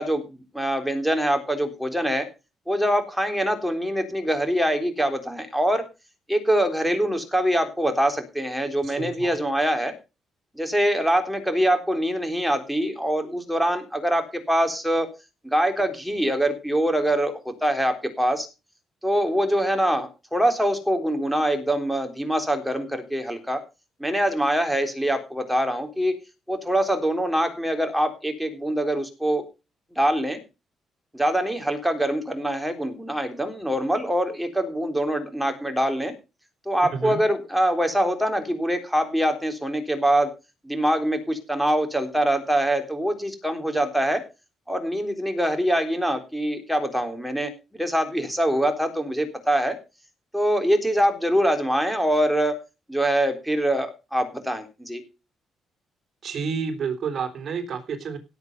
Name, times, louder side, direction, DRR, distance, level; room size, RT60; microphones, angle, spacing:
voice 1, 0.0-2.3 2.7-5.8 6.3-9.9 10.6-15.1 15.4-18.5 19.0-23.6 24.0-26.1 26.5-29.4 30.0-30.4 31.1-36.1 36.7-40.3 40.6-44.2 44.7-49.8 50.3-52.6 52.9-55.0, right 1 dB, ahead, 5 dB, 3.8 m, -24 dB
voice 2, 8.8-9.4 36.9-37.2 56.2-58.2, right 6 dB, 55° right, 6 dB, 3.4 m, -30 dB
17.5 x 8.2 x 5.4 m, 0.30 s
cardioid pair, 90°, 0 cm